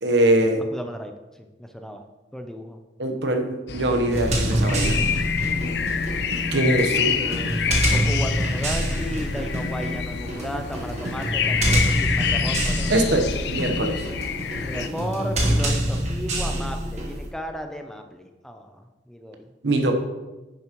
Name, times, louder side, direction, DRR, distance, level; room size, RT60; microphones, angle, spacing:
voice 1, 0.0-0.6 3.0-5.0 6.5-7.2 12.9-14.1 19.6-19.9, right 1 dB, 75° right, 4 dB, 1.1 m, -22 dB
voice 2, 0.7-1.1 1.6-2.0 2.3-2.8 7.2-13.2 14.5-19.5, equal, 5° left, 5 dB, 0.5 m, -34 dB
sound 1, 3.7-14.9, left 7 dB, 65° left, 0.5 m, -27 dB
sound 2, 4.1-17.3, right 1 dB, 40° right, 1.4 m, -26 dB
10.0 x 7.1 x 3.0 m, 1.1 s
head